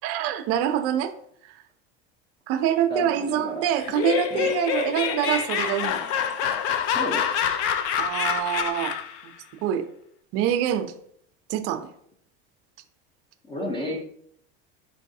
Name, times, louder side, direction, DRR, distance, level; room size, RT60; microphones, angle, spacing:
voice 1, 0.0-1.1 1.4-1.6 2.5-6.0 6.4-6.5 8.0-9.0 9.6-9.9 10.3-10.9 11.5-11.9, right 10 dB, 55° right, 8 dB, 0.6 m, -25 dB
voice 2, 2.9-3.7 4.3-4.5 6.8-7.3 13.5-14.0, left 1 dB, 15° left, -1 dB, 0.7 m, -32 dB
Laughter, 3.8-9.2, left 8 dB, 55° left, 0.4 m, -26 dB
4.7 x 3.1 x 2.7 m, 0.66 s
supercardioid pair, 130°, 29 cm